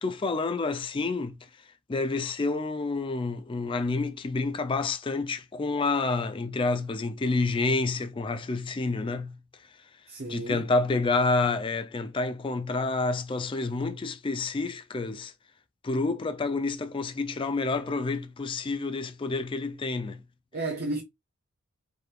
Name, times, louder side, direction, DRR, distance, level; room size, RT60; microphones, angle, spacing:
voice 1, 0.0-1.4 1.9-9.4 10.3-15.3 15.8-20.2, left 3 dB, 20° left, 0.3 m, -28 dB
voice 2, 10.1-10.6 20.5-21.0, right 2 dB, 45° right, 0.8 m, -32 dB
4.7 x 3.1 x 2.4 m
head